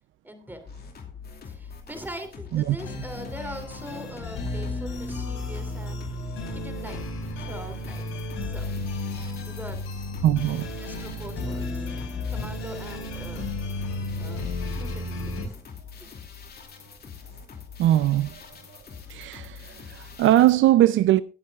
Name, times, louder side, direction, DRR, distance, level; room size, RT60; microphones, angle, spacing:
voice 1, 0.2-0.7 1.5-6.1 6.5-7.0 7.4-8.7 9.4-9.8 10.8-11.9 12.3-13.5 14.2-15.6, equal, 10° right, 2.8 m, -42 dB
sound 1, 0.7-20.6, left 6 dB, 50° left, 2.5 m, -44 dB
sound 2, 2.8-15.5, left 2 dB, 85° left, 4.4 m, -33 dB
voice 2, 10.2-10.7 17.8-18.4 19.1-21.2, right 14 dB, 75° right, 0.5 m, -20 dB
20.5 x 8.5 x 2.4 m
cardioid pair, 90°, 20 cm